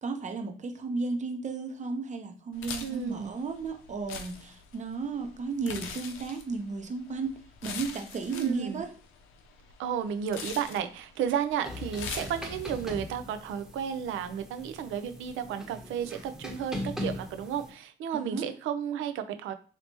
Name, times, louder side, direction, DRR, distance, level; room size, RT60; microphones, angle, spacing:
voice 1, 0.0-8.9 18.1-18.5, right 4 dB, 35° right, 6 dB, 0.7 m, -34 dB
sound 1, 2.5-12.9, left 6 dB, 85° left, 0.6 m, -43 dB
voice 2, 2.8-3.3 8.3-8.8 9.8-19.5, right 8 dB, 75° right, 9 dB, 0.5 m, -33 dB
sound 2, 11.6-17.7, left 1 dB, ahead, 0.9 m, -40 dB
3.2 x 2.8 x 2.9 m, 0.40 s
cardioid pair, 80°, 21 cm